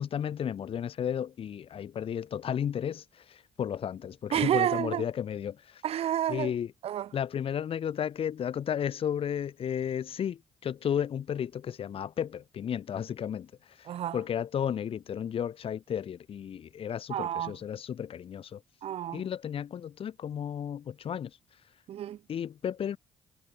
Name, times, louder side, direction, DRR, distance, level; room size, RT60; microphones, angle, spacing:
voice 1, 0.0-5.8 6.3-6.7 7.1-13.9 14.1-18.6 19.1-21.4 22.3-23.0, left 9 dB, 50° left, 1.2 m, -33 dB
voice 2, 4.3-5.1 5.8-6.5 6.8-7.1 13.9-14.2 17.1-17.5 18.8-19.2 21.9-22.2, right 11 dB, 55° right, 0.7 m, -29 dB
hypercardioid pair, 45°, 12 cm